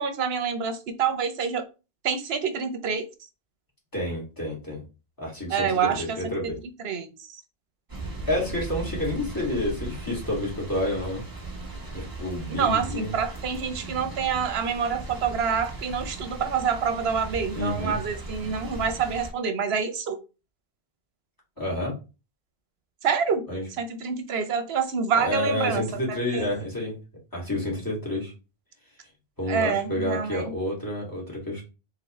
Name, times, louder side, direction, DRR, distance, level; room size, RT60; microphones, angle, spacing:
voice 1, 0.0-1.6 2.0-3.1 5.5-6.2 6.8-7.4 12.6-20.2 23.0-23.4 23.8-26.0 26.3-26.5 29.5-30.5, right 6 dB, 80° right, 9 dB, 1.0 m, -27 dB
voice 2, 3.9-4.8 5.2-6.6 8.3-11.2 11.9-13.1 17.5-18.0 21.6-21.9 23.5-23.6 25.1-27.0 27.3-28.3 29.4-31.6, left 1 dB, 20° left, -4 dB, 2.3 m, -29 dB
sound 1, 7.9-19.3, right 2 dB, 20° right, 1.1 m, -37 dB
4.0 x 3.9 x 3.1 m, 0.30 s
omnidirectional pair, 1.0 m